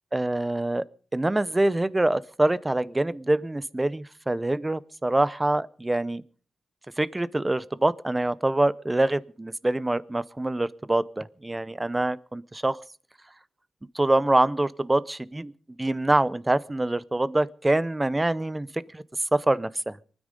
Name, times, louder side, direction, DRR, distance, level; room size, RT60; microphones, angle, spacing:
voice 1, 0.1-0.8 1.1-6.2 7.0-12.8 13.9-15.5 15.8-19.0 19.3-20.0, right 2 dB, 15° right, 0.6 m, -25 dB
24.5 x 9.8 x 5.2 m
cardioid pair, 95°, 0 cm